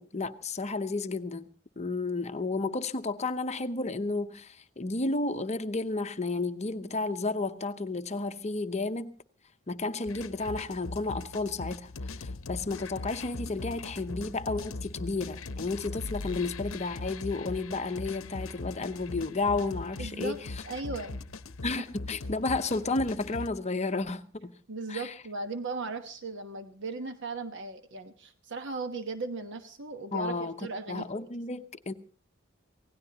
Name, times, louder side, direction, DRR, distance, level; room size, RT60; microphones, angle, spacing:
voice 1, 0.0-1.5 1.8-9.1 9.7-20.4 21.6-24.5 24.9-25.1 30.1-30.6 30.9-31.9, left 3 dB, 35° left, 0.8 m, -32 dB
sound 1, 10.1-23.5, left 3 dB, 70° left, 0.8 m, -40 dB
voice 2, 20.0-21.2 24.7-31.3, right 3 dB, 60° right, 1.1 m, -37 dB
26.0 x 17.5 x 2.9 m
head